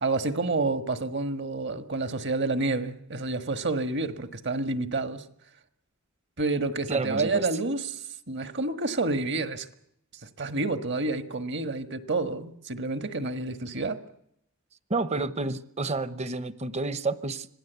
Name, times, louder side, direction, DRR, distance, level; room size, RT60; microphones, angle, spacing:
voice 1, 0.0-5.2 6.4-9.7 10.2-14.0, right 3 dB, 55° right, 1.6 m, -29 dB
voice 2, 6.9-7.5 14.9-17.5, right 3 dB, 30° right, 0.9 m, -30 dB
26.0 x 18.0 x 8.2 m
head